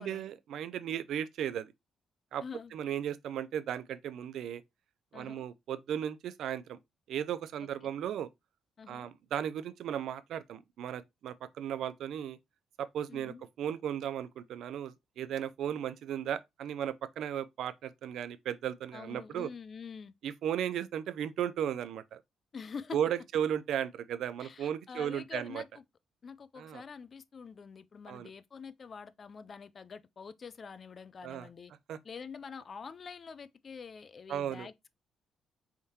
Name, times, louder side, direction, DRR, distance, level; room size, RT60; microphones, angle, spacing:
voice 1, 0.0-1.7 2.3-2.4 2.7-4.6 5.1-6.8 7.1-8.3 8.9-12.4 12.8-19.5 20.2-22.2 22.9-25.6 26.6-26.8 28.1-28.3 31.2-31.5 31.9-32.0 34.3-34.7, right 9 dB, 75° right, 0.4 m, -35 dB
voice 2, 2.4-2.7 5.1-5.5 7.8-7.9 8.8-9.1 13.1-13.4 18.9-20.1 22.5-23.0 24.4-25.8 26.2-31.7 32.0-34.9, left 5 dB, 45° left, 0.4 m, -46 dB
4.6 x 3.5 x 2.8 m
cardioid pair, 90°, 0 cm